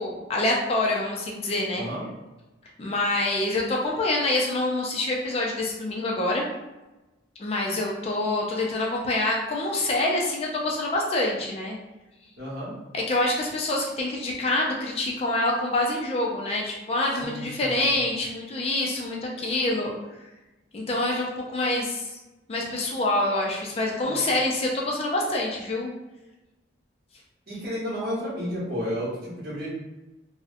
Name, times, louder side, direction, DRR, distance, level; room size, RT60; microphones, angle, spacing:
voice 1, 0.0-1.9 2.8-6.5 7.4-11.8 12.9-19.9 20.7-22.2 22.5-25.9, left 2 dB, 30° left, -2 dB, 0.3 m, -26 dB
voice 2, 12.4-12.7 17.2-17.9 24.0-24.2 27.5-29.7, equal, 55° right, -7 dB, 1.0 m, -32 dB
2.6 x 2.0 x 2.5 m, 1.1 s
head